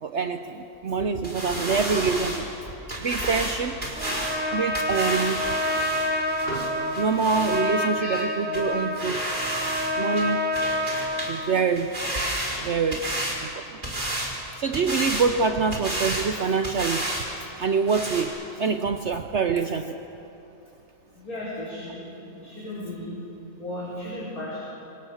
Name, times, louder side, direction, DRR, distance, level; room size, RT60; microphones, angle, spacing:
voice 1, 0.0-2.5 3.0-3.8 4.5-5.5 7.0-9.2 10.0-10.5 11.2-11.9 12.6-13.0 13.4-13.8 14.6-17.1 17.6-20.0, right 5 dB, 55° right, 8 dB, 1.0 m, -25 dB
sound 1, 1.2-7.6 8.1-8.2 8.5-8.7 9.0-9.9 10.2-11.4 11.7-13.4 13.8-14.3 14.7-15.3 15.7-16.3 16.6-17.3 17.5-17.6 17.9-18.2, right 1 dB, 30° right, 4.2 m, -31 dB
Trumpet, 4.0-11.6, left 1 dB, 5° right, 1.3 m, -28 dB
voice 2, 21.1-22.0 22.3-23.2 23.6-24.6, left 1 dB, 65° left, -8 dB, 5.7 m, -35 dB
27.5 x 25.0 x 6.5 m, 2.9 s
omnidirectional pair, 1.6 m